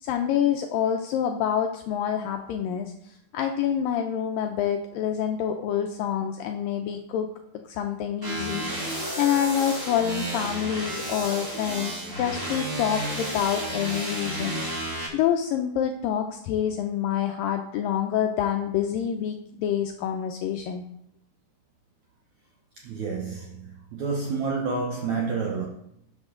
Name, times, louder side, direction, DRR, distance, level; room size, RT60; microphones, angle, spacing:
voice 1, 0.0-2.9 3.3-7.3 7.7-8.7 9.2-14.6 15.1-20.8, left 9 dB, 90° left, 1.9 m, -27 dB
sound 1, 8.2-15.1, right 1 dB, 25° right, 2.1 m, -32 dB
voice 2, 22.8-25.7, right 4 dB, 85° right, 1.6 m, -29 dB
12.5 x 8.3 x 3.8 m
omnidirectional pair, 4.9 m